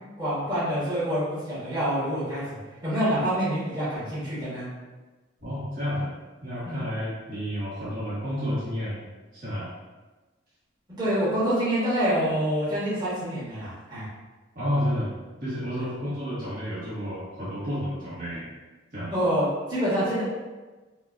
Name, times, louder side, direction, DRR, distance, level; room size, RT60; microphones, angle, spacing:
voice 1, 0.2-4.7 6.6-6.8 10.9-14.1 15.8-15.9 19.1-20.2, equal, 20° right, -11 dB, 1.4 m, -26 dB
voice 2, 5.4-6.1 6.4-9.0 9.3-9.7 14.5-18.4 18.9-19.1, equal, 45° right, -10 dB, 1.3 m, -30 dB
5.4 x 2.2 x 2.6 m, 1.2 s
head